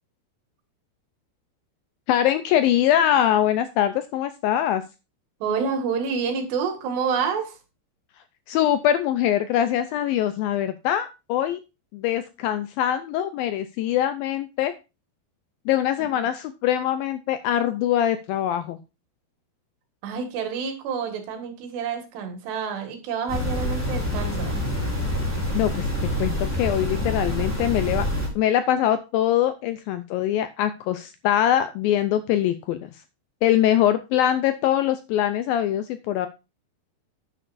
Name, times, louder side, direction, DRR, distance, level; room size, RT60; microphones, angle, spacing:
voice 1, 2.1-4.8 8.5-11.6 11.9-14.7 15.7-18.8 25.5-25.9 26.2-28.1 28.4-32.9 33.4-36.3, left 11 dB, 80° left, 10 dB, 2.1 m, -23 dB
voice 2, 5.4-7.6 16.1-16.3 20.0-24.6, right 6 dB, 85° right, 5 dB, 4.1 m, -28 dB
sound 1, 23.3-28.3, left 1 dB, 5° left, 4.0 m, -26 dB
11.0 x 10.0 x 2.6 m, 0.28 s
omnidirectional pair, 4.8 m